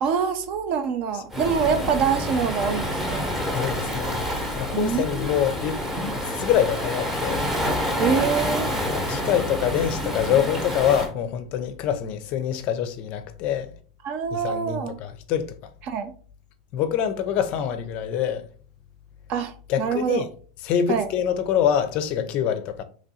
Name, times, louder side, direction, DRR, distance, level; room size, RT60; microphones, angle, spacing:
voice 1, 0.0-3.3 4.7-5.4 8.0-8.7 14.0-15.0 15.9-16.1 19.3-20.2 20.9-21.1, right 7 dB, 45° right, 0.5 m, -25 dB
Waves surf, 1.3-11.1, equal, 10° right, 0.9 m, -28 dB
voice 2, 3.5-5.8 6.2-7.5 8.9-13.7 14.3-15.6 16.7-18.5 19.7-20.3 20.6-22.8, left 9 dB, 45° left, 0.5 m, -25 dB
3.0 x 2.5 x 4.1 m
supercardioid pair, 130°, 3 cm